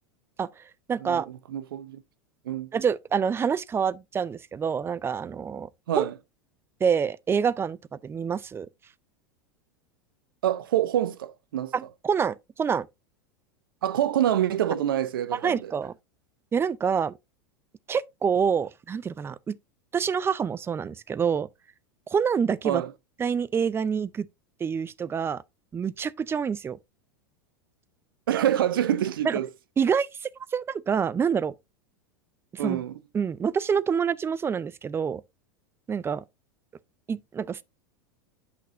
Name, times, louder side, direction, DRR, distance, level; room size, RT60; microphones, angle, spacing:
voice 1, 0.4-1.3 2.7-5.7 6.0-6.1 6.8-8.7 11.7-12.9 15.4-15.9 16.5-17.2 17.9-19.6 19.9-21.5 22.1-22.8 23.2-24.3 24.6-25.4 25.7-26.8 29.2-29.4 29.8-31.5 32.5-32.8 33.1-35.2 35.9-36.2 37.1-37.6, right 6 dB, 20° right, 0.5 m, -27 dB
voice 2, 1.5-2.0 2.5-2.7 5.9-6.1 10.4-11.7 13.8-15.7 22.6-22.9 28.3-29.5 32.6-32.9, right 11 dB, 75° right, 0.8 m, -26 dB
8.7 x 6.0 x 2.6 m
hypercardioid pair, 95°, 12 cm